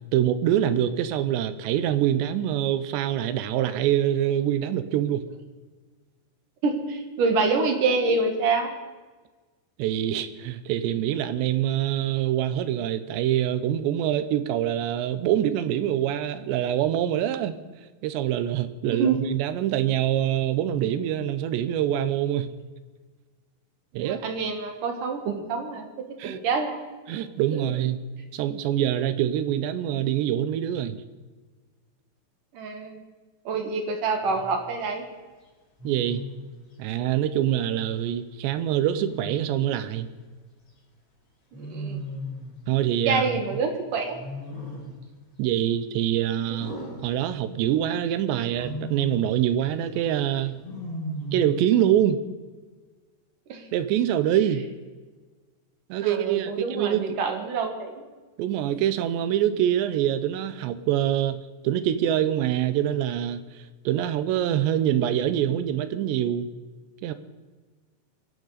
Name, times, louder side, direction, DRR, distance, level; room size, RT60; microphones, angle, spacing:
voice 1, 0.1-5.2 9.8-17.6 18.0-22.5 23.9-24.2 26.2-26.4 27.1-28.0 28.3-31.0 35.8-36.2 36.8-40.1 42.7-43.2 45.4-46.8 47.0-50.6 51.3-52.2 53.7-54.7 55.9-57.2 58.4-63.4 63.9-66.5 67.0-67.1, right 11 dB, 80° right, 12 dB, 3.0 m, -25 dB
voice 2, 6.6-8.7 19.0-19.2 23.9-25.9 26.2-26.8 27.6-27.7 32.5-33.0 33.5-35.1 41.5-42.1 43.1-44.2 46.5-46.6 53.5-53.6 56.0-58.0, right 4 dB, 60° right, 4 dB, 2.6 m, -26 dB
Wild animals, 34.2-34.6 35.8-36.5 38.8-39.8 41.5-42.6 44.1-45.1 46.6-47.7 48.4-49.3 50.6-51.6, equal, 30° left, 6.5 m, -36 dB
27.5 x 11.5 x 4.1 m, 1.3 s
omnidirectional pair, 5.2 m